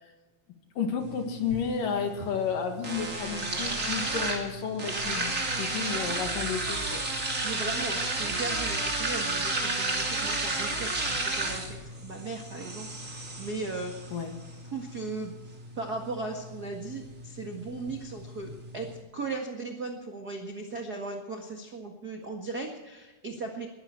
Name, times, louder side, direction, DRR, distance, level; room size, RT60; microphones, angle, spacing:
voice 1, 0.8-7.0 14.1-14.3, left 6 dB, 60° left, 5 dB, 3.2 m, -32 dB
sound 1, 1.0-19.0, right 2 dB, 20° right, 2.7 m, -33 dB
voice 2, 7.4-13.9 14.7-15.3 15.7-23.7, right 3 dB, 50° right, 2 dB, 1.1 m, -37 dB
21.5 x 13.0 x 4.6 m, 1.1 s
omnidirectional pair, 4.7 m